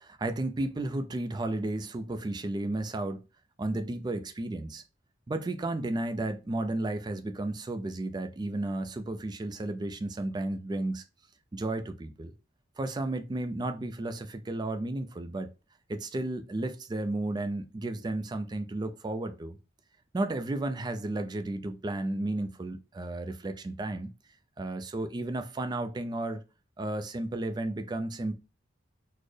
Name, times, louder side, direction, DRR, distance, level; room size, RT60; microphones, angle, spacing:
voice 1, 0.0-3.2 3.6-4.8 5.3-11.0 11.5-12.3 12.8-15.5 15.9-19.6 20.1-24.1 24.6-26.4 26.8-28.4, right 2 dB, 20° right, 0.3 m, -33 dB
4.2 x 2.0 x 3.1 m
head